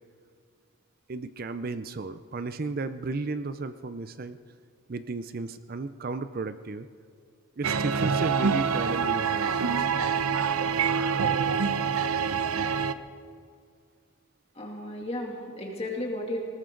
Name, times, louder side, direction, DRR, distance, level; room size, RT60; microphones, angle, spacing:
voice 1, 1.1-4.4 4.9-6.9 7.6-9.5, right 3 dB, 45° right, 12 dB, 0.5 m, -33 dB
sound 1, 7.6-12.9, right 6 dB, 85° right, 0.7 m, -26 dB
voice 2, 14.5-16.4, left 1 dB, 30° left, -1 dB, 2.5 m, -34 dB
19.5 x 19.0 x 3.8 m, 2.2 s
head